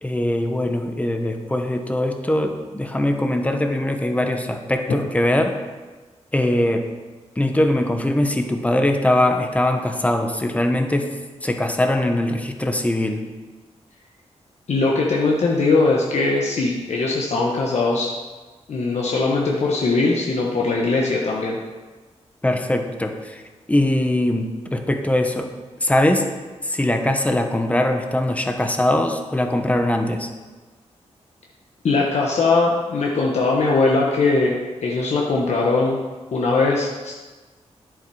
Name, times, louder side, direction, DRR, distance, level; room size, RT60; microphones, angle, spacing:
voice 1, 0.0-5.6 6.3-6.9 7.4-13.3 22.4-23.4 23.7-25.5 25.8-26.3 26.6-30.3, left 1 dB, 10° left, 5 dB, 1.0 m, -21 dB
voice 2, 14.7-18.1 18.7-21.6 31.8-36.0 36.3-37.1, left 3 dB, 70° left, -2 dB, 1.2 m, -20 dB
10.5 x 7.6 x 4.9 m, 1.3 s
wide cardioid pair, 125°, 12 cm